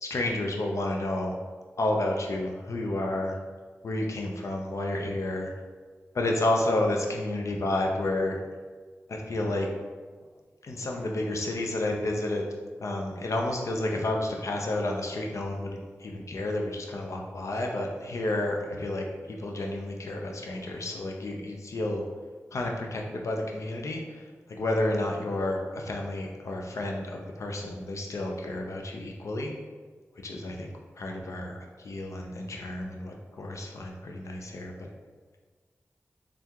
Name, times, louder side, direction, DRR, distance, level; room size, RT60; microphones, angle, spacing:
voice 1, 0.0-1.4 1.8-3.4 3.8-5.5 6.1-8.4 9.1-9.7 10.6-12.5 12.8-22.0 22.5-29.5 30.2-34.9, left 1 dB, 75° left, 1 dB, 0.6 m, -31 dB
3.5 x 2.5 x 4.5 m, 1.4 s
cardioid pair, 50°, 5 cm